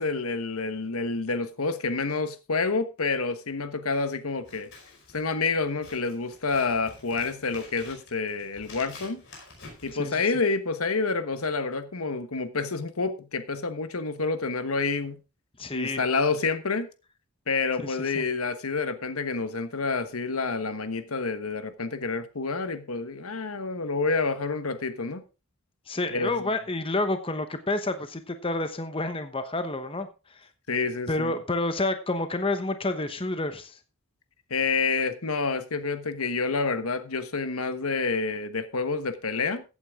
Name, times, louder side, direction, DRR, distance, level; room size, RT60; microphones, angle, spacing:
voice 1, 0.0-4.7 5.1-9.2 9.8-15.2 15.7-16.9 17.5-25.2 26.1-26.3 30.7-31.4 34.5-39.6, left 4 dB, 80° left, 1.3 m, -28 dB
Scissors, 4.4-10.6, left 3 dB, 55° left, 5.2 m, -48 dB
voice 2, 15.6-16.0 17.8-18.3 25.9-30.1 31.1-33.8, left 2 dB, 25° left, 1.0 m, -29 dB
15.0 x 8.6 x 3.7 m
head